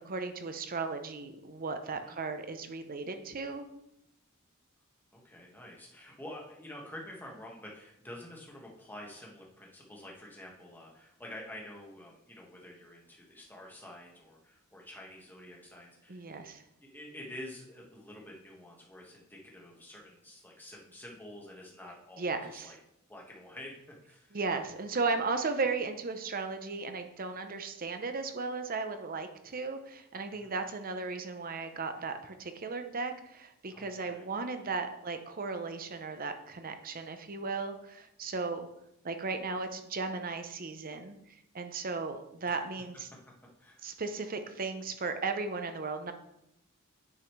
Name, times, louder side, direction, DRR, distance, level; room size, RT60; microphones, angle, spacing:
voice 1, 0.0-3.7 16.1-16.6 22.2-22.7 24.3-38.7 39.0-43.1 43.8-46.1, right 4 dB, 40° right, 8 dB, 0.8 m, -36 dB
voice 2, 5.1-16.5 16.8-22.8 23.1-23.8 24.0-24.4 30.3-30.5 33.7-34.3 42.5-42.6 43.6-43.9, left 1 dB, 10° left, -2 dB, 1.6 m, -48 dB
9.5 x 5.5 x 3.3 m, 0.80 s
head